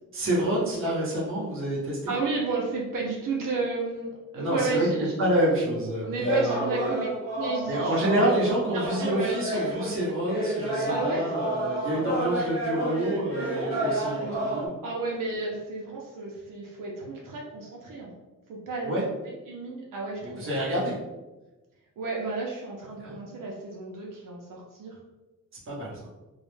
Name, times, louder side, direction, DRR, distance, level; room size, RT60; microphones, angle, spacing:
voice 1, 0.1-2.1 4.3-4.9 5.2-6.9 7.7-14.8 18.8-19.0 20.2-20.9 23.0-23.2 25.7-26.1, right 1 dB, 40° right, -5 dB, 0.8 m, -28 dB
voice 2, 2.1-4.1 4.3-5.1 6.0-7.1 7.3-8.1 8.5-9.8 10.9-11.3 12.4-12.5 13.5-14.5 14.8-18.1 18.5-20.6 22.0-25.0, right 3 dB, 75° right, -3 dB, 0.6 m, -32 dB
sound 1, 6.2-14.7, right 1 dB, 30° left, 0.9 m, -30 dB
2.3 x 2.1 x 3.1 m, 1.1 s
wide cardioid pair, 170°, 32 cm